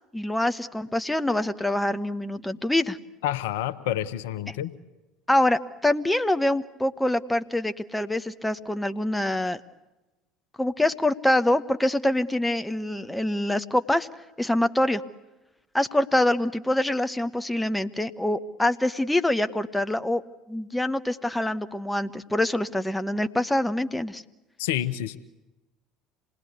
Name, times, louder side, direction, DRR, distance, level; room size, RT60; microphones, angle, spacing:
voice 1, 0.1-3.0 4.5-4.6 5.3-9.6 10.6-14.1 14.4-15.0 15.7-20.2 20.5-24.2, left 1 dB, 5° left, 10 dB, 1.1 m, -25 dB
voice 2, 3.2-4.7 24.6-25.2, left 12 dB, 70° left, 13 dB, 1.0 m, -28 dB
27.5 x 19.5 x 8.3 m, 1.0 s
hypercardioid pair, 65°, 0 cm